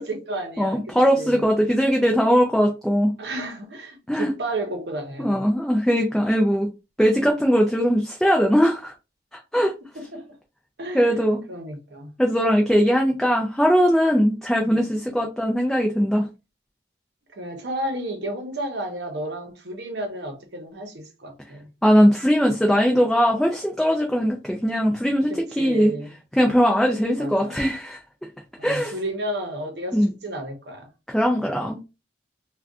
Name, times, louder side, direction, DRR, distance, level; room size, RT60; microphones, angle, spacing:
voice 1, 0.0-0.8 1.1-1.4 3.2-5.6 9.9-10.2 10.8-11.1 11.5-12.1 14.6-14.9 17.3-21.7 25.3-26.1 27.2-27.6 28.6-30.9, right 1 dB, 60° right, 0.8 m, -32 dB
voice 2, 0.6-3.1 4.1-4.3 5.2-6.7 7.0-8.9 9.3-9.7 10.9-11.4 12.2-16.3 21.8-25.9 26.3-28.0 28.6-28.9 29.9-30.1 31.1-31.8, equal, ahead, 0.3 m, -20 dB
2.5 x 2.3 x 3.5 m
head